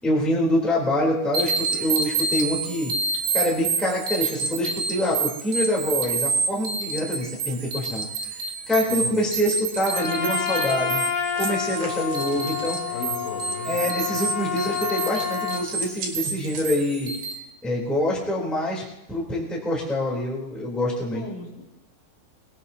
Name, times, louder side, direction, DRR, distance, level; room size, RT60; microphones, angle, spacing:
voice 1, 0.0-2.9 3.3-11.1 11.3-12.8 13.6-17.1 17.6-21.2, left 1 dB, ahead, -4 dB, 2.5 m, -26 dB
sound 1, 1.3-17.3, right 5 dB, 80° right, 3.9 m, -29 dB
Trumpet, 9.9-15.6, left 7 dB, 60° left, 2.9 m, -28 dB
sound 2, 11.4-12.9 14.9-17.1, right 4 dB, 55° right, 3.8 m, -39 dB
voice 2, 12.9-13.8 14.1-14.2 14.5-14.8 21.0-21.7, left 4 dB, 75° left, -2 dB, 5.0 m, -37 dB
24.0 x 19.0 x 2.9 m, 0.93 s
omnidirectional pair, 5.3 m